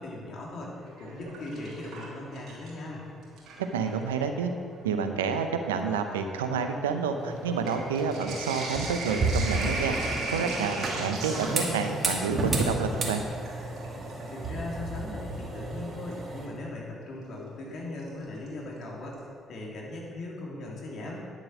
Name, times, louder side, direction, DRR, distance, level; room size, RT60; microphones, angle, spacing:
voice 1, 0.0-3.1 14.3-21.3, left 2 dB, 60° left, -3 dB, 2.9 m, -39 dB
Sink (filling or washing), 0.9-2.9 3.2-4.0 4.8-4.9 5.2-14.3 16.1-16.2 18.0-18.5 18.8-18.9 19.1-19.2, right 2 dB, 60° right, 2.9 m, -37 dB
voice 2, 3.6-4.5 4.8-10.0 10.3-13.2, right 6 dB, 85° right, 7 dB, 0.7 m, -29 dB
sound 1, 7.2-16.5, right 2 dB, 40° right, 2.3 m, -33 dB
10.5 x 7.3 x 6.2 m, 2.2 s
hypercardioid pair, 50°, 0 cm